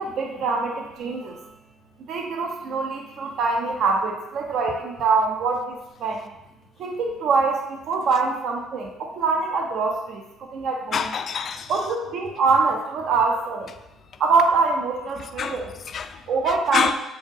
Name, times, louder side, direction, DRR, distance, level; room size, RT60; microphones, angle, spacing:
voice 1, 0.0-1.5 2.1-6.3 6.8-11.1 11.7-13.7 14.2-15.7 16.3-16.9, right 4 dB, 60° right, 2 dB, 0.8 m, -24 dB
voice 2, 10.9-11.7 15.2-16.9, left 6 dB, 45° left, 9 dB, 0.4 m, -28 dB
7.2 x 3.8 x 3.5 m, 0.90 s
cardioid pair, 125°, 0 cm